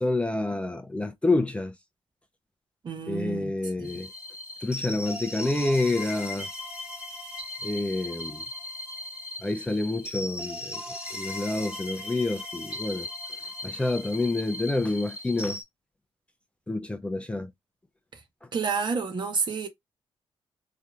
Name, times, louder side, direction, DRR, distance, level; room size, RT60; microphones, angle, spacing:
voice 1, 0.0-1.7 3.1-4.1 4.6-6.5 7.6-8.4 9.4-10.8 11.1-13.1 13.6-15.6 16.7-17.5, left 2 dB, 10° left, 0.5 m, -28 dB
voice 2, 2.8-3.5 3.8-3.9 18.5-19.7, right 5 dB, 50° right, 1.1 m, -29 dB
sound 1, 3.8-15.6, left 2 dB, 10° right, 1.3 m, -38 dB
3.3 x 2.7 x 2.4 m
cardioid pair, 70°, 10 cm